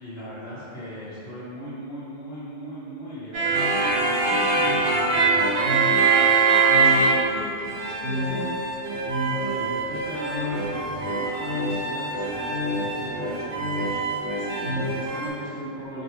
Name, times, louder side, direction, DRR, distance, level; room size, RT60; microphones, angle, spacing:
voice 1, 0.0-5.9 6.3-6.4 9.3-14.0 14.6-16.0, equal, 55° left, -11 dB, 1.1 m, -38 dB
sound 1, 3.3-7.4 7.6-15.3, right 3 dB, 75° right, 0.9 m, -23 dB
voice 2, 6.7-8.5 14.4-14.7, left 2 dB, 85° left, -5 dB, 1.0 m, -37 dB
2.7 x 2.2 x 2.8 m, 2.6 s
omnidirectional pair, 1.3 m